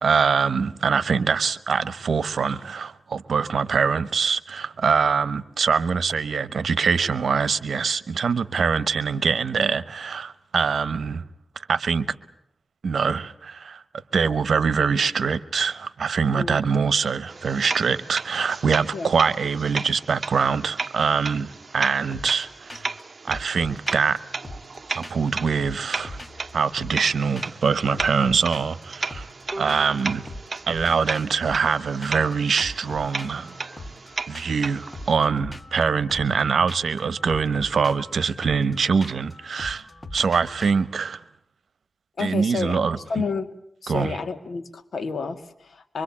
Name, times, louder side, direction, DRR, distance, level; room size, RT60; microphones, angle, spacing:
voice 1, 0.0-11.2 11.6-12.1 12.8-13.8 14.1-23.0 23.3-24.2 24.9-26.2 26.5-29.3 29.6-30.3 30.7-33.5 34.3-39.8 40.1-41.2 42.2-43.0 43.9-44.2, right 5 dB, 80° right, 1.0 m, -23 dB
voice 2, 16.3-16.6 18.9-19.1 42.2-43.5 43.8-46.0, left 4 dB, 75° left, 2.0 m, -30 dB
sound 1, 17.3-35.1, right 4 dB, 50° right, 1.1 m, -35 dB
sound 2, 22.1-22.4 22.7-23.0 23.3-25.3 25.6-27.1 27.4-27.7 27.9-30.0 30.3-40.7, left 1 dB, 20° left, 1.9 m, -41 dB
Bowed string instrument, 29.5-32.8, right 1 dB, 10° right, 4.7 m, -44 dB
24.5 x 24.0 x 8.6 m
wide cardioid pair, 80°, 0 cm